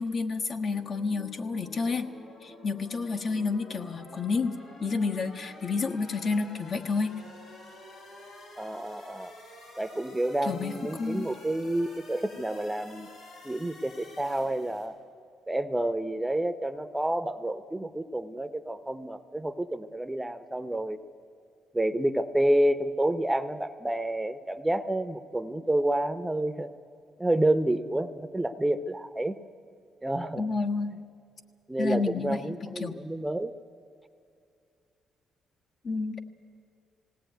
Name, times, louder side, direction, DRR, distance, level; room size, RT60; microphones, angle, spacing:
voice 1, 0.0-2.1 2.4-7.2 10.4-11.3 30.4-31.0 31.8-33.0 35.8-36.2, left 4 dB, 50° left, 4 dB, 1.4 m, -30 dB
sound 1, 0.7-14.9, left 2 dB, 80° left, 5.9 m, -49 dB
voice 2, 8.6-9.4 9.8-13.1 13.4-14.9 15.5-21.0 21.7-26.7 27.2-29.4 30.0-30.4 31.7-33.5, right 1 dB, 10° right, 11 dB, 0.8 m, -29 dB
19.0 x 18.0 x 9.3 m, 2.4 s
cardioid pair, 90°, 0 cm